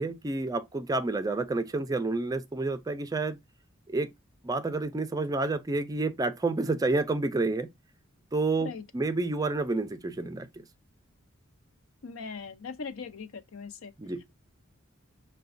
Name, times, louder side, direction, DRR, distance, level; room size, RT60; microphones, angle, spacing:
voice 1, 0.0-3.4 3.9-4.1 4.4-7.7 8.3-10.7 14.0-14.2, right 3 dB, 15° right, 0.4 m, -29 dB
voice 2, 12.0-13.9, left 5 dB, 80° left, 0.6 m, -40 dB
5.7 x 2.2 x 2.5 m
head